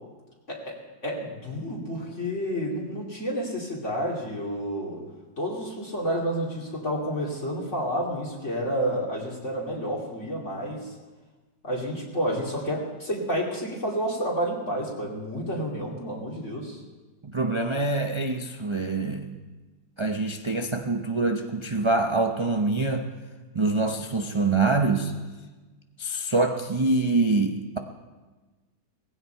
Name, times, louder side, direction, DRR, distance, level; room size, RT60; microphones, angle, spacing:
voice 1, 1.0-5.0 5.4-10.9 11.6-16.8, equal, 40° left, -3 dB, 3.0 m, -30 dB
voice 2, 17.2-19.3 20.0-23.1 23.5-25.1 26.0-27.8, right 3 dB, 40° right, 4 dB, 0.4 m, -25 dB
19.0 x 16.0 x 4.6 m, 1.3 s
omnidirectional pair, 1.9 m